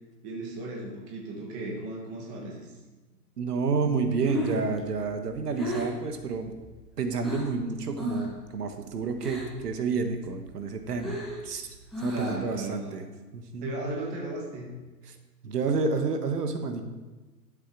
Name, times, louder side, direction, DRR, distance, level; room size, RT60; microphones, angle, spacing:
voice 1, 0.2-2.7 12.1-13.0 13.6-14.7, right 2 dB, 15° right, -2 dB, 1.5 m, -36 dB
voice 2, 3.4-6.5 7.0-13.0 13.3-13.7 15.0-15.1 15.4-16.8, right 4 dB, 70° right, 7 dB, 1.4 m, -30 dB
Breathing, 4.2-7.6 7.9-8.4 8.7-9.7 10.0-12.6, equal, ahead, 0.4 m, -35 dB
12.0 x 7.7 x 4.8 m, 1.2 s
hypercardioid pair, 160°, 50 cm